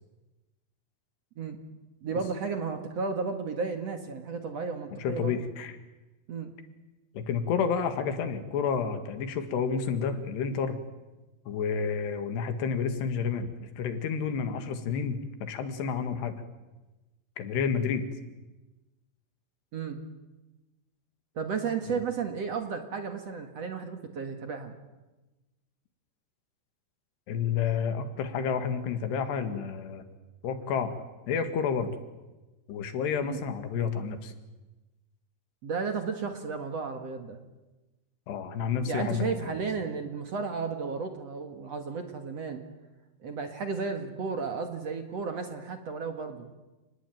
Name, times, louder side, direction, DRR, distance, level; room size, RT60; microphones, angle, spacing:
voice 1, 2.0-5.4 6.3-6.5 19.7-20.0 21.4-24.8 33.2-33.4 35.6-37.4 38.8-42.6 43.2-46.6, right 5 dB, 50° right, 6 dB, 2.2 m, -33 dB
voice 2, 5.0-5.7 7.2-10.8 11.5-16.3 17.4-18.0 21.9-22.0 27.3-30.0 30.4-30.9 31.3-31.9 32.7-34.3 38.3-39.5, left 6 dB, 85° left, 8 dB, 4.1 m, -30 dB
29.5 x 20.0 x 9.3 m, 1.1 s
omnidirectional pair, 4.7 m